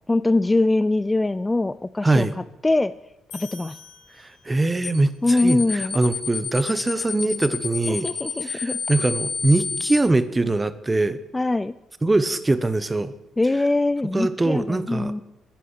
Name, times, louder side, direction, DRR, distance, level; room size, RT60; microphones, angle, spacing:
voice 1, 0.1-2.3 2.6-2.9 3.3-3.8 5.2-6.0 7.9-8.8 11.3-11.7 13.4-15.2, left 2 dB, 15° left, 15 dB, 0.4 m, -22 dB
voice 2, 2.0-2.4 4.2-8.1 8.4-11.2 12.0-13.1 14.1-15.1, right 2 dB, 20° right, 13 dB, 1.0 m, -22 dB
sound 1, 3.3-4.9, left 5 dB, 90° left, 4.7 m, -45 dB
sound 2, 4.8-5.0 5.3-10.0, left 6 dB, 50° left, 2.7 m, -29 dB
10.5 x 10.0 x 8.5 m, 0.97 s
cardioid pair, 90°, 0 cm